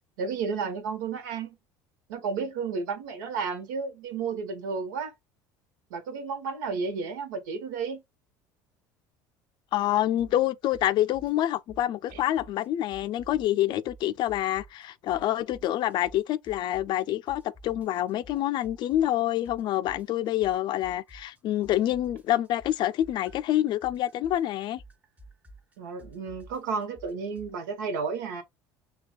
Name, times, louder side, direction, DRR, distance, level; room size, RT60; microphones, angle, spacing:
voice 1, 0.2-1.6 2.1-5.1 5.9-8.0 12.1-12.2 25.8-28.4, right 5 dB, 85° right, 0.9 m, -32 dB
voice 2, 9.7-24.8, left 13 dB, 55° left, 0.4 m, -27 dB
sound 1, 10.2-10.5 10.7-12.7 12.9-14.8 15.1-17.0 17.3-21.4 21.6-27.5, right 1 dB, 15° right, 0.8 m, -51 dB
5.9 x 2.3 x 2.3 m
supercardioid pair, 85°, 9 cm